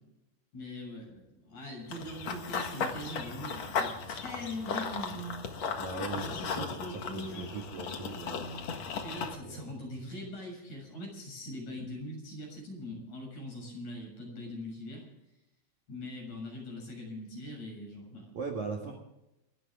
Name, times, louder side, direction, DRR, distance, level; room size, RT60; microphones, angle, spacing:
voice 1, 0.5-5.4 6.1-7.5 9.0-15.0 15.9-18.3 18.9-19.0, left 1 dB, 35° left, 0 dB, 8.1 m, -42 dB
Run / Bird vocalization bird call bird song, 1.9-9.3, left 5 dB, 90° left, 1.4 m, -36 dB
voice 2, 5.8-8.7 9.4-9.9 18.3-18.9, right 4 dB, 50° right, 1 dB, 2.6 m, -40 dB
28.5 x 12.0 x 3.8 m, 0.89 s
omnidirectional pair, 6.0 m